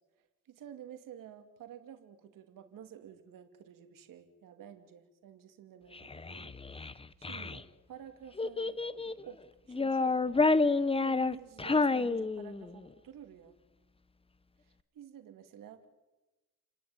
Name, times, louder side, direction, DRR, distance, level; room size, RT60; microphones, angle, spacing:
voice 1, 0.2-8.8 9.0-10.3 11.0-13.5 14.6-15.9, right 9 dB, 90° right, 7 dB, 2.6 m, -51 dB
Child speech kid speaking, 5.9-7.6 8.4-9.2 9.7-12.8, left 3 dB, 15° left, 0.9 m, -29 dB
30.0 x 11.0 x 9.6 m, 1.1 s
cardioid pair, 95°, 32 cm